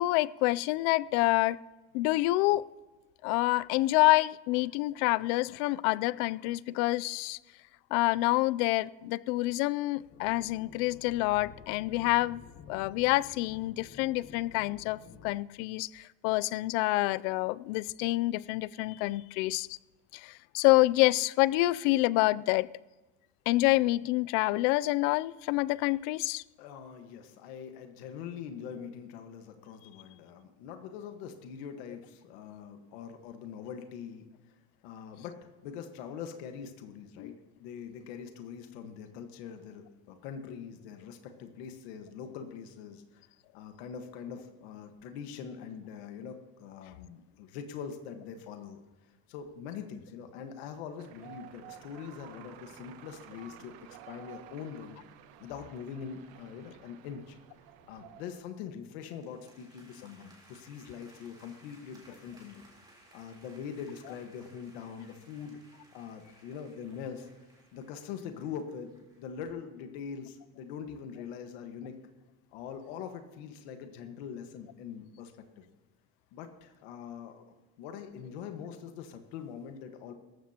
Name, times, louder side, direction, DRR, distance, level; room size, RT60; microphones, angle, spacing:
voice 1, 0.0-1.6 1.9-2.6 3.2-7.4 7.9-12.4 12.7-19.8 20.1-22.7 23.5-26.4 37.2-37.3, left 19 dB, 75° left, 0.5 m, -27 dB
sound 1, 10.1-15.3, left 6 dB, 40° left, 0.9 m, -52 dB
voice 2, 26.6-34.3 34.8-35.4 35.6-37.3 37.6-43.2 43.5-48.8 49.3-55.0 55.4-57.4 57.9-62.7 63.1-65.6 65.9-67.3 67.7-72.0 72.5-75.6 76.3-77.4 77.8-80.1, left 7 dB, 90° left, 1.5 m, -43 dB
sound 2, 51.0-58.4, right 11 dB, 75° right, 1.2 m, -52 dB
sound 3, 59.0-69.3, right 1 dB, 15° right, 3.5 m, -61 dB
18.0 x 14.5 x 2.9 m
cardioid pair, 150°, 31 cm